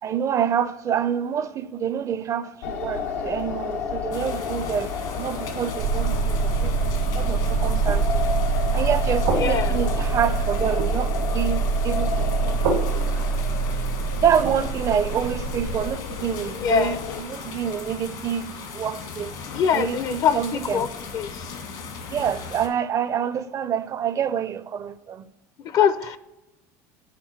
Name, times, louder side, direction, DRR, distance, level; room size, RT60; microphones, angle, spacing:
voice 1, 0.0-6.9 7.1-8.2 8.7-13.2 14.1-20.9 22.1-25.2, right 8 dB, 40° right, 0.4 m, -27 dB
sound 1, 2.6-17.2, left 5 dB, 85° left, 0.8 m, -32 dB
sound 2, 4.1-22.7, left 5 dB, 70° left, 1.5 m, -38 dB
sound 3, 5.8-15.9, right 5 dB, 80° right, 1.2 m, -24 dB
voice 2, 9.3-9.8 16.6-17.0 19.5-20.9 21.1-21.5 25.6-26.2, left 8 dB, 50° left, 0.5 m, -23 dB
5.8 x 4.2 x 5.7 m
supercardioid pair, 95°, 8 cm